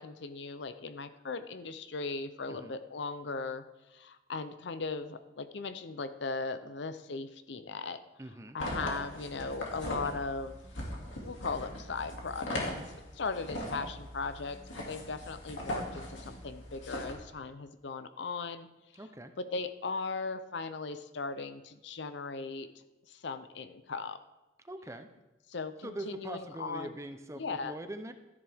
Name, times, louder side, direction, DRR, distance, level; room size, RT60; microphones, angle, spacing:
voice 1, 0.0-3.6 3.9-8.0 8.5-10.6 11.2-12.8 13.1-14.6 14.9-18.7 19.4-22.7 23.1-24.2 25.5-26.9 27.4-27.7, left 4 dB, 65° left, 11 dB, 0.6 m, -38 dB
voice 2, 8.2-8.6 10.0-10.3 18.9-19.3 24.6-25.1 25.8-28.1, right 1 dB, 15° right, 8 dB, 0.6 m, -43 dB
sound 1, 8.6-17.1, equal, 85° left, 2.5 m, -40 dB
13.0 x 10.5 x 3.5 m, 1.0 s
head